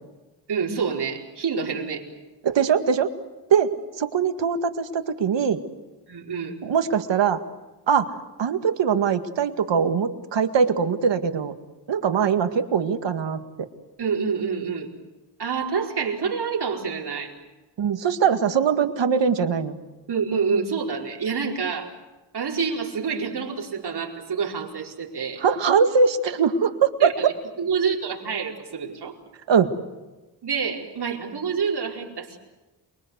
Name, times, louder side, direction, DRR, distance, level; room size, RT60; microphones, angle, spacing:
voice 1, 0.5-2.1 6.1-6.6 14.0-14.9 15.4-17.3 20.1-21.9 22.3-25.4 27.0-27.3 27.6-29.2 30.4-32.4, right 5 dB, 65° right, 0 dB, 4.8 m, -27 dB
voice 2, 2.4-3.1 3.5-3.7 4.0-5.6 6.6-7.4 7.9-11.5 11.9-13.4 17.8-19.8 25.4-27.1 29.5-29.7, right 6 dB, 90° right, 8 dB, 2.0 m, -22 dB
28.5 x 23.0 x 8.1 m, 1.1 s
wide cardioid pair, 125°, 43 cm